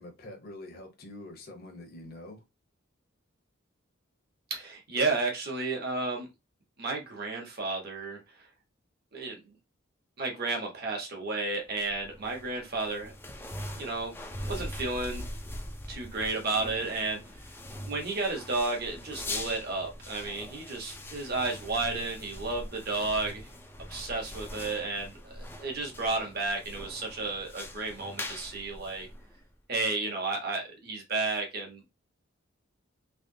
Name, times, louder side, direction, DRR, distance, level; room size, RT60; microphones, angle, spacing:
voice 1, 0.0-2.4, left 1 dB, 50° left, 0.9 m, -45 dB
voice 2, 4.5-6.3 6.8-8.2 9.1-9.5 10.2-13.1 13.7-14.1 14.4-15.2 15.9-17.2 17.8-23.5 23.9-29.1 29.7-31.9, right 3 dB, 50° right, 1.3 m, -32 dB
sound 1, 11.7-29.6, left 1 dB, 10° left, 0.5 m, -42 dB
3.4 x 3.1 x 2.7 m
head